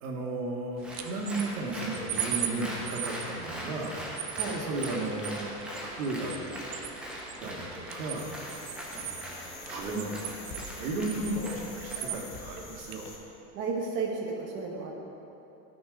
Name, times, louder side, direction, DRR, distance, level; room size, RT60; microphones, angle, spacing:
voice 1, 0.0-4.0 4.5-5.5 5.8-6.3 7.4-8.3 8.9-13.1, right 2 dB, 80° right, -1 dB, 2.0 m, -35 dB
Applause, 0.8-12.4, equal, 5° right, 0.7 m, -41 dB
sound 1, 0.8-13.2, right 10 dB, 45° right, 0.6 m, -40 dB
sound 2, 8.1-13.2, left 4 dB, 35° left, 1.3 m, -46 dB
voice 2, 13.5-14.9, right 4 dB, 25° right, -1 dB, 1.1 m, -33 dB
13.0 x 6.1 x 5.1 m, 2.9 s
supercardioid pair, 170°, 42 cm